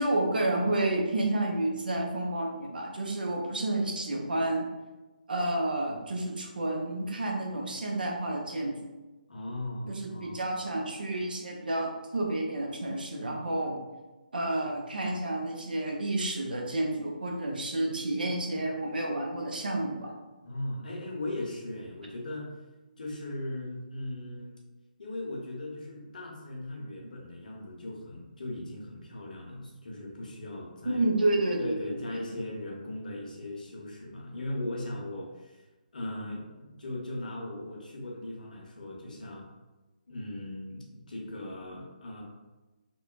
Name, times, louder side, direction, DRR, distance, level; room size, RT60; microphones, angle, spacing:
voice 1, 0.0-4.7 5.3-8.7 9.9-13.8 14.3-20.1 30.8-32.2, right 1 dB, 70° right, 0 dB, 0.6 m, -30 dB
voice 2, 9.3-10.4 20.4-22.5 23.0-24.6 25.0-31.0 31.6-35.6 35.9-39.5 40.1-42.2, left 1 dB, 60° left, -1 dB, 0.7 m, -38 dB
2.9 x 2.1 x 2.4 m, 1.1 s
figure-of-eight pair, 145°, 5 cm